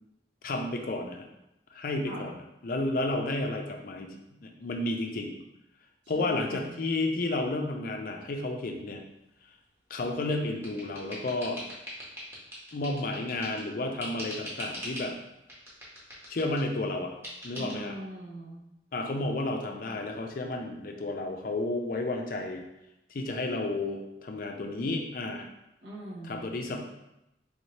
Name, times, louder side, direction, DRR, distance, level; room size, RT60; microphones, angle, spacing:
voice 1, 0.4-1.3 1.7-5.4 6.1-9.0 9.9-11.6 12.7-15.1 16.3-17.1 17.4-17.9 18.9-22.6 23.1-25.5 26.2-26.8, left 2 dB, 50° left, 3 dB, 0.4 m, -32 dB
voice 2, 6.1-6.7 17.5-18.6 25.8-26.5, right 1 dB, 90° right, -5 dB, 1.1 m, -42 dB
sound 1, 10.0-13.7 14.0-15.1 15.5-16.7 17.2-17.8, equal, 15° right, 0.9 m, -42 dB
3.5 x 2.7 x 3.1 m, 0.89 s
head